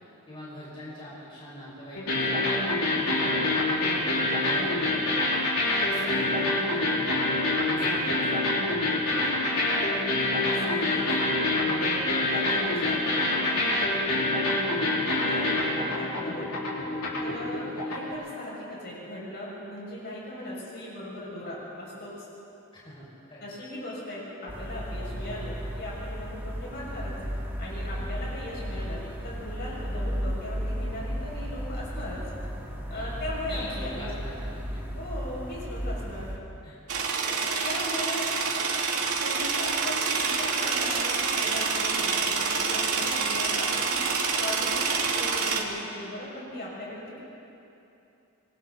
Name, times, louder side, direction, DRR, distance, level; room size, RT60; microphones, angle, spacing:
voice 1, 0.3-5.1 5.7-9.3 14.5-14.8 17.7-17.8 22.8-23.5 27.8-28.1 32.9-34.6 36.6-36.7, equal, 25° left, -8 dB, 5.8 m, -42 dB
sound 1, 1.9-18.1, left 2 dB, 80° left, 4.8 m, -26 dB
voice 2, 10.4-13.9 15.1-16.4 17.2-22.3 23.4-27.1 27.6-32.2 32.9-34.1 34.9-36.3 37.3-37.4 37.6-38.3 39.2-43.9 44.4-47.2, left 1 dB, 50° left, -6 dB, 6.6 m, -38 dB
sound 2, 24.5-36.4, equal, 10° right, 2.6 m, -34 dB
sound 3, 36.9-45.6, right 5 dB, 85° right, 2.1 m, -27 dB
27.0 x 23.5 x 4.1 m, 2.8 s
head